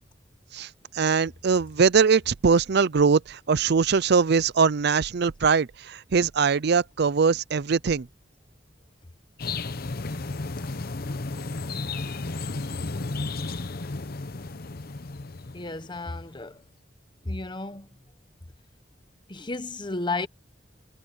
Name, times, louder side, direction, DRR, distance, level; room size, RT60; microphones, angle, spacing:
voice 1, 0.9-8.1, right 5 dB, 60° right, 0.5 m, -22 dB
sound 1, 9.4-16.3, left 3 dB, 55° left, 0.9 m, -33 dB
voice 2, 15.5-16.6 17.2-17.9 19.3-20.3, left 2 dB, 25° left, 1.1 m, -32 dB
head